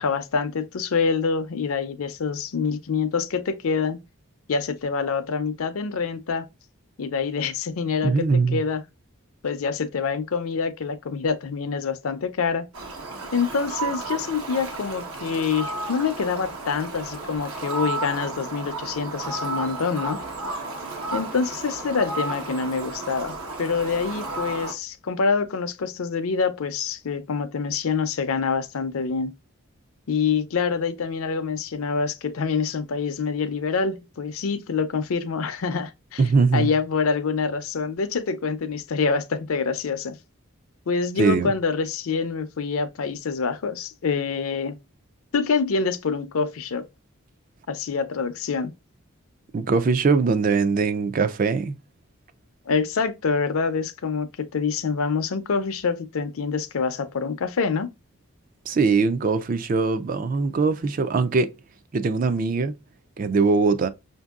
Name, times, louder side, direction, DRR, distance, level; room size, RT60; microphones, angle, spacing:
voice 1, 0.0-4.0 4.5-6.5 7.0-8.8 9.4-12.7 13.3-20.2 21.1-29.3 30.1-36.2 36.5-40.2 40.9-44.8 45.3-46.8 47.7-48.7 52.7-57.9, left 5 dB, 75° left, 0.5 m, -26 dB
voice 2, 8.0-8.6 36.2-36.7 41.2-41.5 49.5-51.8 58.7-61.5 61.9-62.7 63.2-63.9, right 4 dB, 40° right, 0.3 m, -21 dB
Fowl, 12.7-24.7, right 3 dB, 85° right, 1.1 m, -33 dB
5.8 x 2.6 x 2.3 m
head